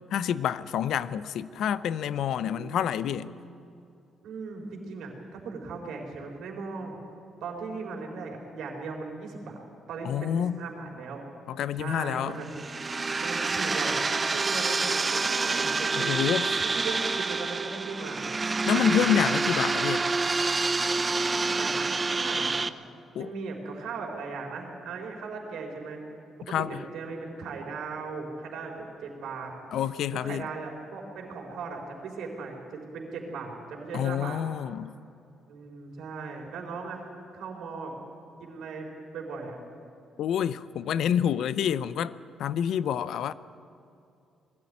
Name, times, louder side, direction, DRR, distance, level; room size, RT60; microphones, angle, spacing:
voice 1, 0.1-3.3 10.0-10.6 11.5-12.4 16.0-16.5 18.7-20.1 23.1-23.3 26.5-26.8 29.7-30.5 33.9-34.9 40.2-42.1 42.4-43.3, left 9 dB, 75° left, 0.6 m, -28 dB
voice 2, 2.3-3.5 4.2-7.0 7.4-9.6 9.9-11.2 11.7-12.6 13.2-14.0 14.2-16.2 16.6-19.2 21.5-22.5 23.2-26.0 26.6-29.5 30.1-34.4 35.5-37.1 37.3-38.0 38.4-38.9 39.1-39.6, right 4 dB, 75° right, 3.9 m, -38 dB
sound 1, 12.4-22.7, right 3 dB, 30° right, 0.6 m, -27 dB
20.0 x 13.5 x 9.8 m
cardioid pair, 90°, 0 cm